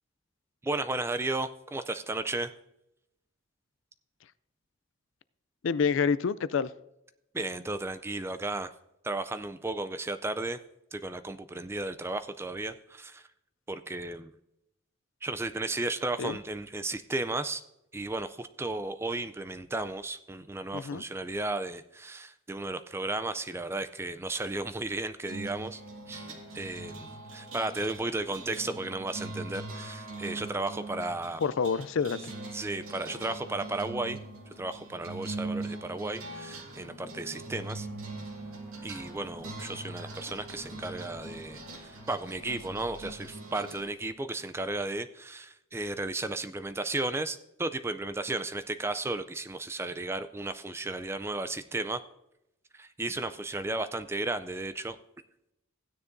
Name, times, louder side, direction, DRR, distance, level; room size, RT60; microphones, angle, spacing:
voice 1, 0.6-2.5 7.3-8.7 9.0-10.6 10.9-13.2 13.7-14.3 15.2-17.6 17.9-25.8 26.1-31.4 32.5-34.2 34.6-37.9 38.8-52.0 52.7-55.0, right 2 dB, 10° right, 11 dB, 0.3 m, -34 dB
voice 2, 5.6-6.7 16.2-16.4 20.7-21.0 31.4-32.3, left 5 dB, 65° left, 17 dB, 0.4 m, -28 dB
sound 1, 25.2-43.8, right 2 dB, 90° right, 2.1 m, -42 dB
sound 2, 38.1-43.2, left 2 dB, 45° left, 3.4 m, -57 dB
16.0 x 9.7 x 2.6 m, 0.87 s
head